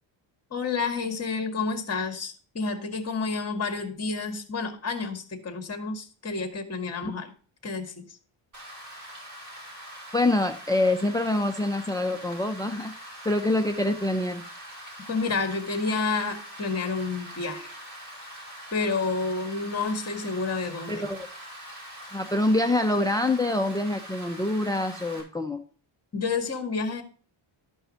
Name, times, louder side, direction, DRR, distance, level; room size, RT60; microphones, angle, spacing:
voice 1, 0.5-7.3 7.6-8.0 15.1-17.7 18.7-21.1 26.1-27.0, left 4 dB, 30° left, 5 dB, 2.1 m, -29 dB
Rain, 8.5-25.2, equal, 35° right, 5.4 m, -43 dB
voice 2, 10.1-12.9 13.2-14.4 20.9-21.3 22.1-25.6, left 2 dB, 5° left, 8 dB, 0.7 m, -25 dB
13.5 x 5.5 x 4.4 m, 0.41 s
cardioid pair, 120°, 49 cm